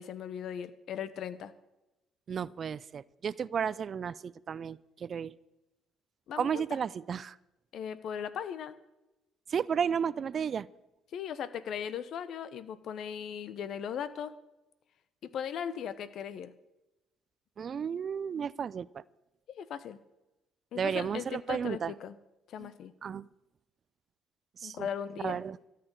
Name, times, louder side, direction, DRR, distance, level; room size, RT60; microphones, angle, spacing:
voice 1, 0.0-1.5 6.3-6.8 7.7-8.7 11.1-14.3 15.2-16.5 19.5-20.0 20.7-22.2 22.5-22.9 24.6-25.4, left 8 dB, 60° left, 14 dB, 0.9 m, -38 dB
voice 2, 2.3-5.3 6.4-7.4 9.5-10.7 17.6-19.0 20.8-21.9 22.6-22.7 23.0-23.3 24.6-24.9 25.2-25.6, right 7 dB, 45° right, 21 dB, 0.4 m, -33 dB
13.5 x 6.7 x 9.7 m, 0.96 s
hypercardioid pair, 50°, 0 cm